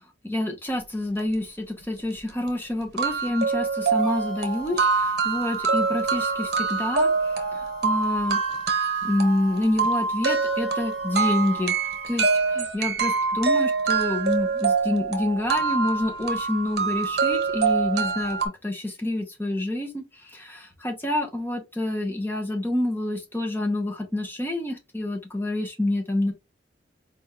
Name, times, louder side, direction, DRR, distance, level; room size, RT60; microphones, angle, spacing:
voice 1, 0.2-7.1 7.5-8.4 9.0-11.7 12.1-12.3 12.5-20.0 20.3-26.3, left 1 dB, 10° left, 0.8 m, -27 dB
sound 1, 2.0-2.1 2.5-2.6 3.0-18.5, right 5 dB, 55° right, 0.9 m, -25 dB
sound 2, 3.9-12.6, left 4 dB, 75° left, 2.2 m, -42 dB
4.6 x 3.4 x 2.3 m
head